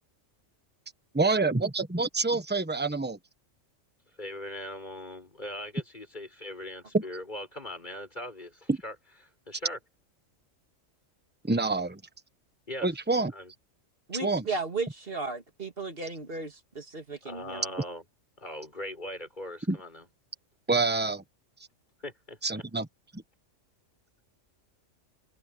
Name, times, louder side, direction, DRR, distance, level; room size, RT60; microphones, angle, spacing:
voice 1, 1.1-3.2 6.9-7.0 8.7-8.8 11.5-12.0 12.8-13.3 14.2-14.4 19.7-19.8 20.7-21.2 22.4-22.9 23.1-23.2, right 3 dB, 10° right, 1.2 m, -26 dB
voice 2, 4.2-9.0 9.5-9.8 12.7-12.9 13.3-13.5 17.2-18.0 18.4-20.1 22.0-22.6, left 1 dB, 35° left, 5.5 m, -40 dB
voice 3, 14.1-17.6, right 3 dB, 45° right, 2.7 m, -35 dB
omnidirectional pair, 1.3 m